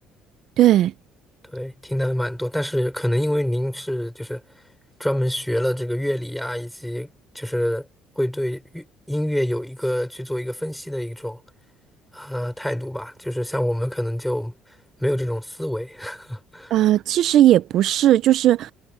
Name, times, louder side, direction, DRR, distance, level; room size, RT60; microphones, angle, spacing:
voice 1, 0.6-0.9 16.7-18.7, right 13 dB, 65° right, 0.7 m, -17 dB
voice 2, 1.4-4.6 5.0-7.1 7.3-7.9 8.1-11.4 12.1-16.8, equal, 5° left, 5.0 m, -26 dB
cardioid pair, 100°, 0 cm